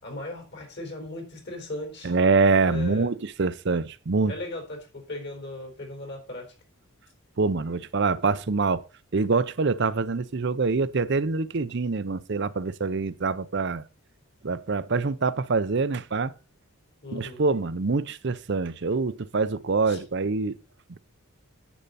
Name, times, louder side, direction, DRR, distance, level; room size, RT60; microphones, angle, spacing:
voice 1, 0.0-2.2 2.6-3.1 4.3-6.5 17.0-17.4 19.9-20.0, left 2 dB, 50° left, 4.1 m, -37 dB
voice 2, 2.0-4.3 7.4-8.8 9.1-13.9 14.4-16.3 17.1-20.6, right 4 dB, 55° right, 0.6 m, -25 dB
10.0 x 8.1 x 4.1 m
head